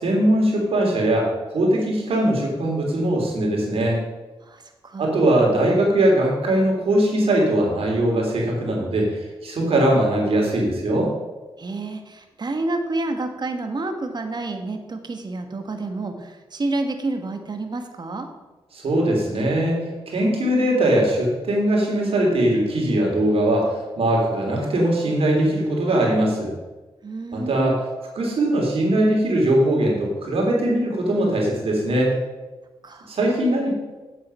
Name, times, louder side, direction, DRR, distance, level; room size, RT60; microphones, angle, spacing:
voice 1, 0.0-1.3 1.5-4.0 5.0-11.1 18.7-23.7 24.0-26.5 27.3-27.8 28.1-32.1 33.1-33.7, right 1 dB, 75° right, -1 dB, 3.2 m, -20 dB
voice 2, 4.4-5.1 11.6-18.3 27.0-27.8 32.8-33.1, right 2 dB, 45° right, 6 dB, 1.4 m, -29 dB
8.2 x 7.5 x 5.6 m, 1.2 s
cardioid pair, 60°, 10 cm